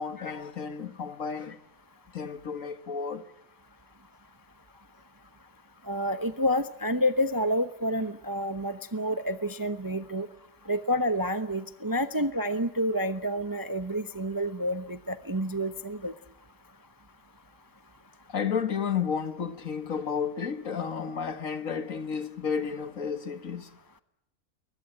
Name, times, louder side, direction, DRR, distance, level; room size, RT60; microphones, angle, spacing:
voice 1, 0.0-1.6 2.1-3.3 18.3-23.7, left 6 dB, 55° left, 1.8 m, -32 dB
voice 2, 5.9-10.3 10.7-16.1, equal, 15° right, 0.7 m, -29 dB
22.0 x 20.5 x 8.8 m
omnidirectional pair, 1.7 m